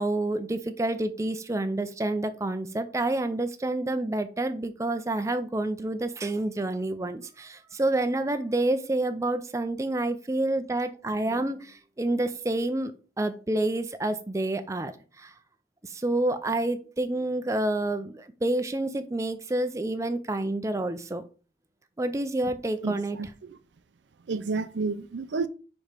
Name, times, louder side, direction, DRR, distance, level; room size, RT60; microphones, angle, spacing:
voice 1, 0.0-12.9 13.2-15.3 15.8-21.2 22.0-23.2, right 2 dB, 15° right, 0.4 m, -28 dB
voice 2, 22.8-23.6 24.3-25.5, right 4 dB, 75° right, 0.5 m, -31 dB
4.9 x 4.2 x 5.1 m
head